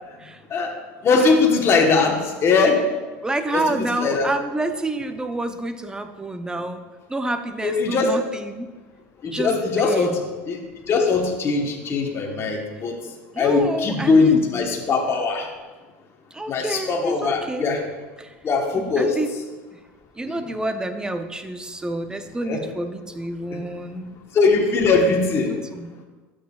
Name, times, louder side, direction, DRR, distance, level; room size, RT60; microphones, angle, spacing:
voice 1, 1.0-2.8 3.5-4.3 7.6-8.1 9.2-10.2 10.5-10.6 10.9-12.9 13.4-15.5 16.5-17.8 18.4-19.2 20.3-20.4 22.4-22.6 23.5-23.6 24.3-25.5, left 4 dB, 35° left, 1 dB, 1.1 m, -20 dB
voice 2, 3.2-6.8 7.1-8.7 9.3-10.2 13.3-14.6 16.3-17.7 18.2-18.3 18.8-19.3 20.2-24.2 25.5-25.9, right 2 dB, 10° right, 8 dB, 0.6 m, -28 dB
12.5 x 6.3 x 2.4 m, 1.3 s
supercardioid pair, 105°, 7 cm